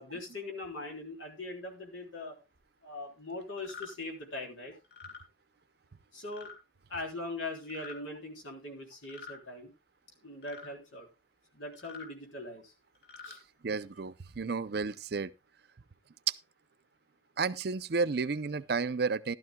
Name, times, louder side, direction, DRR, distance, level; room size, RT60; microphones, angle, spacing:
voice 1, 0.0-2.4 2.8-4.8 6.1-6.5 6.9-9.7 10.2-11.1 11.5-12.7 13.2-13.4, left 2 dB, 90° left, 3.8 m, -41 dB
sound 1, 3.6-3.9 4.8-5.2 6.3-6.6 7.6-8.0 9.0-9.4 10.4-10.7 11.7-12.1 12.9-13.4, left 5 dB, 55° left, 4.4 m, -47 dB
voice 2, 13.6-15.3 16.3-16.4 17.4-19.4, right 4 dB, 55° right, 0.5 m, -31 dB
15.5 x 12.0 x 2.2 m
head